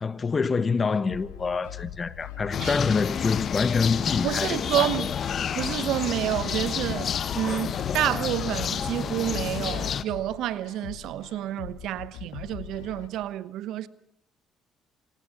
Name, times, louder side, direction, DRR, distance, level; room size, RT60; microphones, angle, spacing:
voice 1, 0.0-5.0, left 5 dB, 35° left, 1.4 m, -26 dB
sound 1, 1.1-13.1, left 13 dB, 85° left, 1.7 m, -42 dB
sound 2, 2.5-10.0, left 8 dB, 55° left, 1.2 m, -30 dB
voice 2, 4.2-5.1 5.6-13.9, right 13 dB, 70° right, 1.0 m, -29 dB
26.5 x 19.5 x 6.6 m
hypercardioid pair, 65°, 0 cm